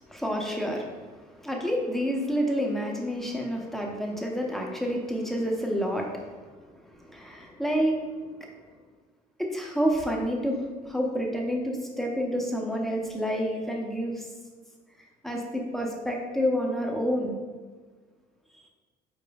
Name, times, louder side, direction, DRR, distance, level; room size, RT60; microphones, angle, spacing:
voice 1, 0.2-1.0 1.4-6.4 6.8-8.0 8.4-8.5 9.4-10.6 10.8-14.3 15.2-17.3, equal, ahead, 0 dB, 0.7 m, -29 dB
5.0 x 4.3 x 2.3 m, 1.4 s
cardioid pair, 110°, 17 cm